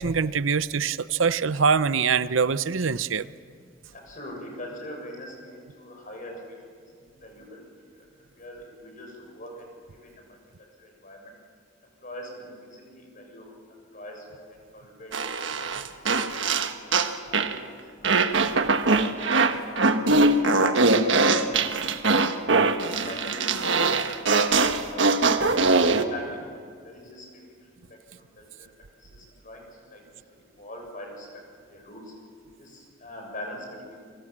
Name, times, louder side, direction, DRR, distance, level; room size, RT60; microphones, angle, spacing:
voice 1, 0.0-3.3, right 5 dB, 90° right, 15 dB, 0.7 m, -24 dB
voice 2, 3.9-6.6 7.1-7.6 7.9-8.1 8.4-10.4 10.8-11.3 12.0-13.5 13.9-14.4 14.7-15.1 16.1-17.6 18.0-18.5 18.8-19.2 19.6-21.9 22.8-25.1 25.6-27.7 28.1-28.7 29.0-31.3 31.6-32.1 32.6-34.1, left 1 dB, 40° left, 2 dB, 7.3 m, -43 dB
sound 1, 15.1-17.6 18.0-26.0, right 3 dB, 70° right, 1.4 m, -22 dB
30.0 x 24.0 x 7.5 m, 2.1 s
head